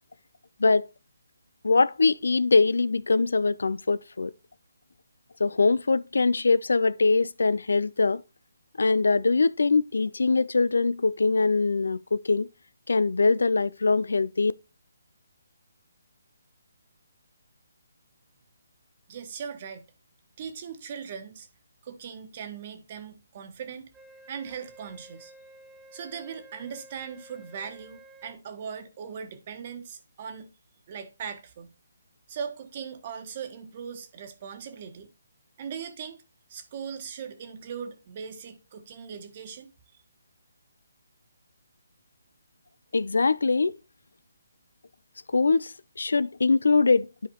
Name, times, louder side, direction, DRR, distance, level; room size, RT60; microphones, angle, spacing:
voice 1, 1.6-4.3 5.4-8.2 8.8-12.5 12.9-14.5 42.9-43.8 45.3-47.3, left 3 dB, 80° left, 0.4 m, -23 dB
voice 2, 19.1-19.9 20.4-21.5 21.8-23.9 24.3-25.3 25.9-30.5 30.9-31.7 32.3-35.1 35.6-36.2 36.5-39.7, right 7 dB, 35° right, 1.3 m, -39 dB
Wind instrument woodwind instrument, 23.9-28.4, right 1 dB, 5° right, 0.6 m, -52 dB
11.5 x 5.0 x 2.8 m
hypercardioid pair, 160°, 0 cm